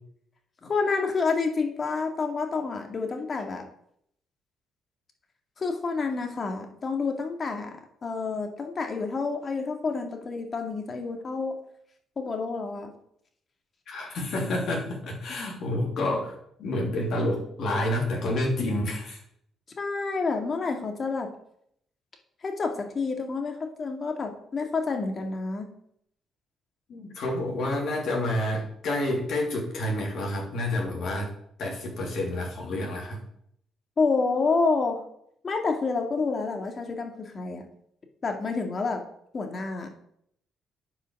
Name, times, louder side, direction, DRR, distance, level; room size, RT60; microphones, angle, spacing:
voice 1, 0.6-3.6 5.6-11.5 12.2-12.9 19.8-21.3 22.4-25.7 34.0-35.0 35.4-37.6 38.2-39.0 39.3-39.9, left 4 dB, 45° left, 3 dB, 2.1 m, -28 dB
voice 2, 13.9-16.3 16.6-19.2 26.9-31.3 31.6-33.2, left 1 dB, 65° left, 0 dB, 2.9 m, -29 dB
9.6 x 5.0 x 6.5 m, 0.71 s
supercardioid pair, 55°, 0 cm